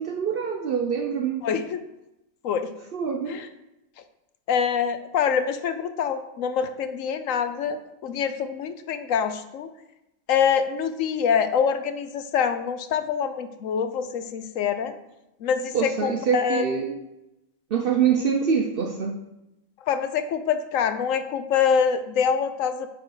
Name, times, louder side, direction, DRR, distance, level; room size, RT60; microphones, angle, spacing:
voice 1, 0.0-1.4 2.9-3.4 15.7-17.0 17.7-19.2, right 7 dB, 60° right, 3 dB, 0.6 m, -25 dB
voice 2, 1.4-1.8 2.4-2.7 3.3-3.5 4.5-9.7 10.3-14.9 15.4-16.6 19.9-22.9, left 7 dB, 70° left, 10 dB, 1.0 m, -25 dB
9.7 x 4.4 x 3.8 m, 0.91 s
omnidirectional pair, 1.5 m